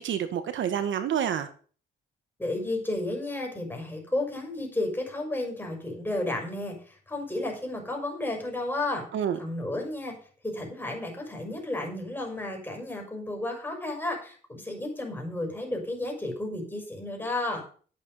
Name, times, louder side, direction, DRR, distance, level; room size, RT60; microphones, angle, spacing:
voice 1, 0.0-1.5 9.1-9.4, right 9 dB, 70° right, 10 dB, 1.3 m, -28 dB
voice 2, 2.4-9.0 9.4-10.2 10.4-17.6, left 2 dB, 10° left, 1 dB, 6.0 m, -32 dB
11.5 x 8.5 x 5.5 m, 0.42 s
cardioid pair, 90°, 20 cm